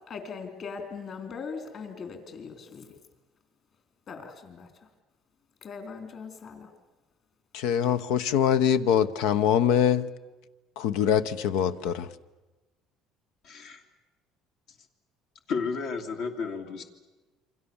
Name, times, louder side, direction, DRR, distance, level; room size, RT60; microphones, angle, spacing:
voice 1, 0.1-2.9 4.1-4.9 5.6-6.7, left 5 dB, 45° left, 6 dB, 4.0 m, -40 dB
voice 2, 7.5-10.1 10.8-12.1, left 9 dB, 85° left, 12 dB, 1.1 m, -23 dB
voice 3, 13.4-13.8 15.5-16.8, left 5 dB, 70° left, 3 dB, 2.7 m, -32 dB
28.0 x 25.0 x 7.2 m, 1.1 s
cardioid pair, 135°, 0 cm